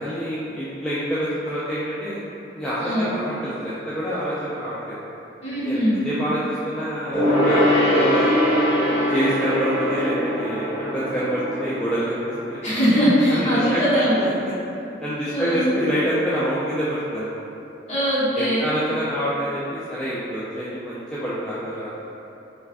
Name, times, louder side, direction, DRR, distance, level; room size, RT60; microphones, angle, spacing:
voice 1, 0.0-2.2 2.5-5.0 5.6-5.8 6.0-7.6 7.9-8.3 8.8-10.7 10.9-12.6 13.3-13.8 14.2-14.3 15.0-17.4 18.4-21.9, equal, 5° left, -11 dB, 0.3 m, -27 dB
voice 2, 2.8-3.1 5.4-6.0 12.6-14.2 15.3-15.7 17.9-18.7, equal, 35° left, -11 dB, 1.1 m, -21 dB
Gong, 7.1-13.0 13.3-13.4, equal, 20° right, 1.4 m, -22 dB
3.2 x 2.4 x 3.4 m, 2.8 s
head